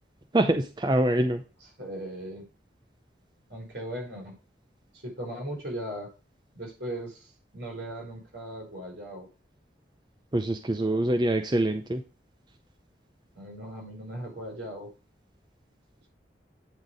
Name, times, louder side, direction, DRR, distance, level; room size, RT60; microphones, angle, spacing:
voice 1, 0.3-1.4 10.3-12.0, right 1 dB, 25° right, 6 dB, 0.6 m, -25 dB
voice 2, 1.6-2.5 3.5-4.4 4.9-6.1 6.5-9.3 13.3-14.9, right 1 dB, 75° right, 1 dB, 5.1 m, -38 dB
9.2 x 4.1 x 5.0 m, 0.32 s
head